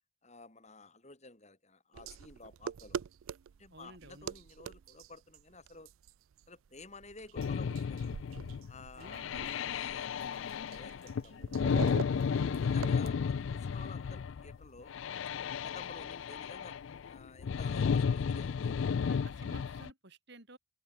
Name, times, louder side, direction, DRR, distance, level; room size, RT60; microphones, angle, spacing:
voice 1, 0.2-3.0 3.6-5.9 6.5-8.1 8.7-11.5 12.0-14.9 15.6-16.8 17.0-18.8, left 3 dB, 35° left, 4.8 m, -53 dB
sound 1, 1.9-13.1, right 7 dB, 75° right, 0.4 m, -45 dB
voice 2, 3.7-4.3 8.9-9.4 12.3-12.9 19.0-20.6, right 2 dB, 55° right, 6.2 m, -54 dB
sound 2, 7.4-19.9, left 6 dB, 65° left, 0.4 m, -33 dB
open air
head